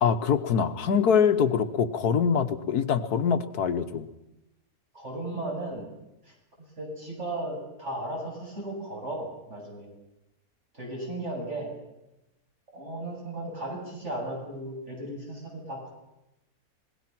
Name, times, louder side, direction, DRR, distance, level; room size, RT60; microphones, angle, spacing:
voice 1, 0.0-4.1, left 7 dB, 80° left, 9 dB, 1.6 m, -24 dB
voice 2, 4.9-5.9 6.2-6.3 6.8-9.9 10.7-11.7 12.7-15.9, right 1 dB, 45° right, -1 dB, 8.3 m, -35 dB
26.0 x 21.0 x 6.0 m, 0.93 s
omnidirectional pair, 1.6 m